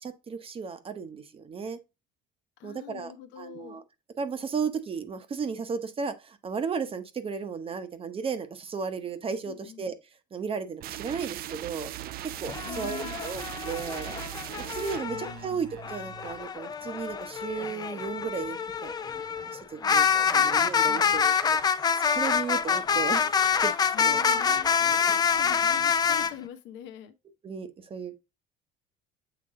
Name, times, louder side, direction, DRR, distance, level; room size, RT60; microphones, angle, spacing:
voice 1, 0.0-1.8 2.6-3.8 4.2-9.9 10.3-11.9 12.2-14.1 14.6-18.9 19.5-21.3 21.7-21.8 22.1-23.3 23.6-23.7 24.0-24.6 25.0-25.1 27.4-28.1, right 5 dB, 30° right, 0.8 m, -34 dB
voice 2, 2.6-3.8 9.4-9.9 12.6-13.2 15.0-15.6 19.8-20.5 20.8-21.2 23.9-27.1, left 10 dB, 75° left, 1.0 m, -44 dB
sound 1, 10.8-16.4, right 14 dB, 55° right, 0.4 m, -39 dB
sound 2, 12.4-15.3 15.8-26.3, left 6 dB, 20° left, 0.4 m, -26 dB
7.8 x 3.3 x 3.7 m
cardioid pair, 135°, 19 cm